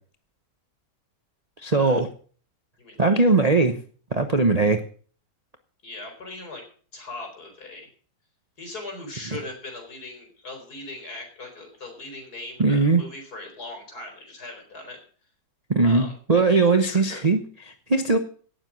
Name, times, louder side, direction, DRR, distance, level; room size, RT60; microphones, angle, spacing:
voice 1, 1.6-2.1 3.0-3.8 4.1-4.8 12.6-13.0 15.7-18.2, right 3 dB, 30° right, 6 dB, 0.8 m, -20 dB
voice 2, 2.8-3.4 5.8-6.6 6.9-7.9 8.6-15.0 15.8-17.2, left 2 dB, 60° left, 3 dB, 5.0 m, -39 dB
17.5 x 7.5 x 6.1 m, 0.43 s
omnidirectional pair, 1.9 m